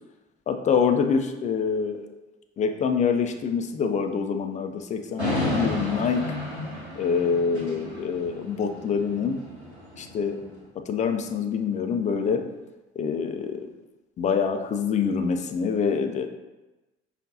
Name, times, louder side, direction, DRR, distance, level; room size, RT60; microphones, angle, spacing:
voice 1, 0.5-2.1 2.6-6.2 7.0-9.4 10.0-10.4 10.9-12.4 13.0-13.7 14.2-16.3, left 6 dB, 25° left, 6 dB, 0.3 m, -25 dB
sound 1, 5.2-10.5, left 1 dB, 90° right, 0.7 m, -33 dB
5.1 x 2.4 x 2.6 m, 1.1 s
figure-of-eight pair, 50°, 32 cm